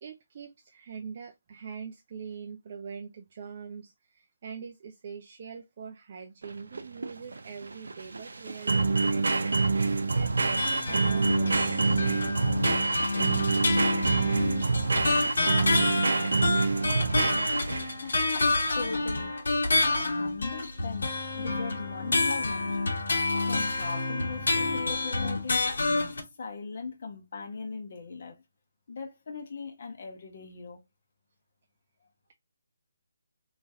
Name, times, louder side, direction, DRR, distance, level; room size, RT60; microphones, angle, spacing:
voice 1, 0.0-11.9, right 6 dB, 40° right, 0.5 m, -43 dB
sound 1, 6.4-18.1, right 3 dB, 80° right, 0.7 m, -26 dB
sound 2, 10.2-26.2, left 3 dB, 75° left, 1.3 m, -29 dB
voice 2, 18.0-18.4 18.7-19.4 19.8-23.0 23.5-25.6 26.0-28.3 28.9-30.8, left 4 dB, 50° left, 1.2 m, -39 dB
3.0 x 2.8 x 3.6 m
hypercardioid pair, 160°, 0 cm